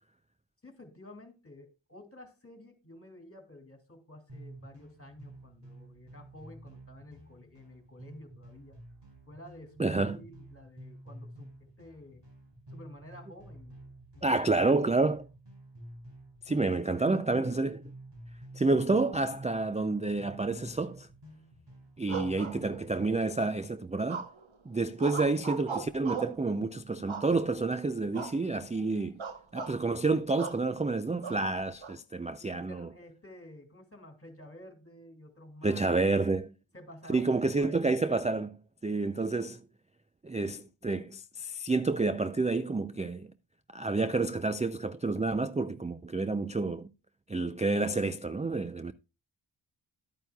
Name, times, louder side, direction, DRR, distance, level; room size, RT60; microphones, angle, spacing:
voice 1, 0.6-8.8 9.3-12.2 12.7-14.3 16.6-17.5 32.4-36.2 36.7-37.8, left 1 dB, 30° left, 2.5 m, -51 dB
sound 1, 4.3-23.1, right 1 dB, 60° right, 5.5 m, -50 dB
voice 2, 9.8-10.2 14.2-15.3 16.5-17.8 18.5-21.1 22.0-24.2 24.7-29.2 29.5-32.9 35.6-36.5 37.1-38.6 38.8-39.6 40.2-43.3 43.7-46.9 47.3-48.9, right 3 dB, 15° right, 0.3 m, -29 dB
sound 2, 22.1-23.1 24.1-24.6 25.0-26.4 27.1-27.7 28.1-28.4 28.7-28.9 29.2-29.8 30.4-30.6 31.2-31.9, right 5 dB, 75° right, 1.1 m, -38 dB
11.5 x 9.1 x 2.3 m
wide cardioid pair, 60°, 48 cm